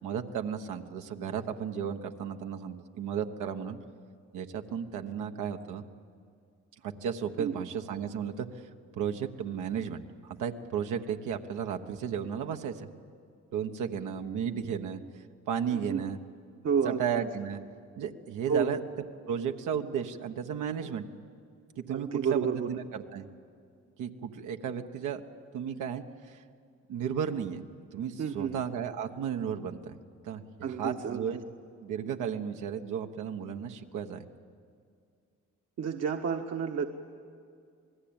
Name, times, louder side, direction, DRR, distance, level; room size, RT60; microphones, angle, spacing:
voice 1, 0.0-3.8 4.3-5.8 6.8-8.5 8.9-12.9 13.5-16.2 16.8-17.6 18.0-18.8 19.3-21.1 21.7-23.3 24.0-25.2 25.5-26.4 26.9-27.6 27.9-30.0 30.2-31.4 31.8-34.3, right 8 dB, 85° right, 5 dB, 1.4 m, -34 dB
voice 2, 15.7-16.0 16.6-17.0 18.5-18.7 21.9-22.7 28.2-28.5 30.6-31.3 35.8-36.8, right 6 dB, 60° right, 3 dB, 1.4 m, -30 dB
27.5 x 19.5 x 8.9 m, 2.3 s
cardioid pair, 90°, 30 cm